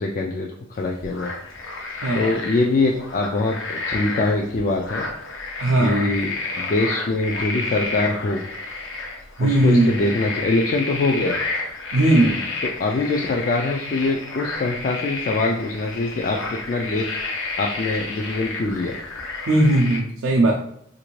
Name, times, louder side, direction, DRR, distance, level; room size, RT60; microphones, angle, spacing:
voice 1, 0.0-1.3 2.1-5.1 5.8-8.4 9.4-11.4 12.6-17.1 17.6-19.0, left 2 dB, 40° left, 0 dB, 0.3 m, -23 dB
sound 1, 0.8-20.0, left 3 dB, 70° left, 0.8 m, -31 dB
voice 2, 2.0-2.4 5.6-6.1 9.4-9.9 11.9-12.4 19.5-20.5, right 1 dB, 80° right, -1 dB, 0.4 m, -18 dB
3.2 x 2.6 x 3.1 m, 0.70 s
head